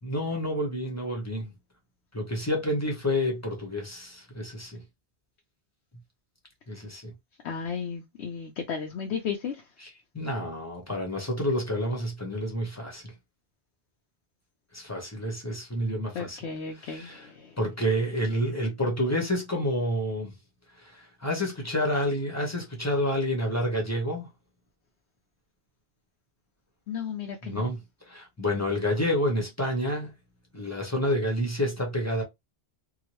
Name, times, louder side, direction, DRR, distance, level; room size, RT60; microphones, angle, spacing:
voice 1, 0.0-1.5 2.1-4.8 6.7-7.1 9.8-13.1 14.7-16.4 16.7-17.3 17.6-20.3 20.7-24.3 27.4-27.8 28.1-30.1 30.5-32.2, equal, 15° left, 0.8 m, -29 dB
voice 2, 7.4-9.6 16.1-17.6 26.9-27.7, left 6 dB, 75° left, 0.9 m, -34 dB
2.8 x 2.3 x 3.0 m
omnidirectional pair, 1.1 m